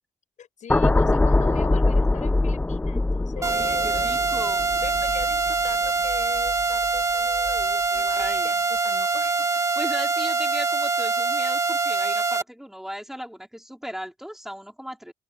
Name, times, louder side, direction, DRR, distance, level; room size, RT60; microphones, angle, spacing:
voice 1, 0.4-4.5 4.8-9.6, left 8 dB, 75° left, 5.6 m, -41 dB
sound 1, 0.7-7.0 7.4-7.6, left 2 dB, 10° left, 0.4 m, -23 dB
voice 2, 3.4-4.7 7.9-8.7 9.8-15.1, equal, 5° right, 4.5 m, -37 dB
sound 2, 3.4-12.4, right 4 dB, 25° right, 1.9 m, -24 dB
open air
cardioid pair, 95°, 13 cm